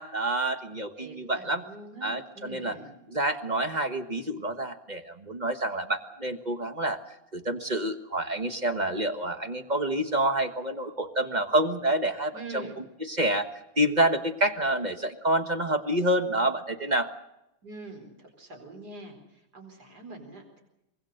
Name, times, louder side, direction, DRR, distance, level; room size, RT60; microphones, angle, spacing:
voice 1, 0.0-1.6 2.0-2.8 3.1-7.0 7.3-12.6 13.0-13.5 13.8-17.1, right 1 dB, 25° right, 7 dB, 1.2 m, -28 dB
voice 2, 1.0-2.9 12.3-12.8 17.6-20.6, right 2 dB, 45° right, 5 dB, 5.1 m, -44 dB
24.5 x 21.0 x 6.6 m, 0.86 s
omnidirectional pair, 2.3 m